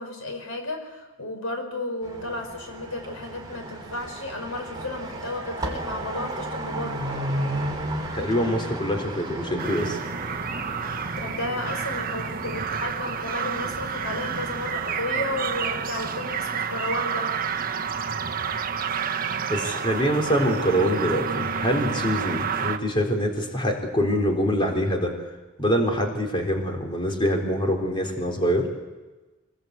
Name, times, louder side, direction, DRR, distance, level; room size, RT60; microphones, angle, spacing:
voice 1, 0.0-7.0 11.2-17.3, left 2 dB, 75° left, 5 dB, 5.5 m, -33 dB
sound 1, 2.0-16.4, right 1 dB, 20° right, 3.7 m, -35 dB
voice 2, 8.1-10.0 19.5-25.1 25.6-28.7, equal, 25° left, 3 dB, 3.9 m, -24 dB
sound 2, 9.6-22.8, right 6 dB, 40° right, 1.1 m, -29 dB
24.5 x 20.0 x 8.3 m, 1.2 s
head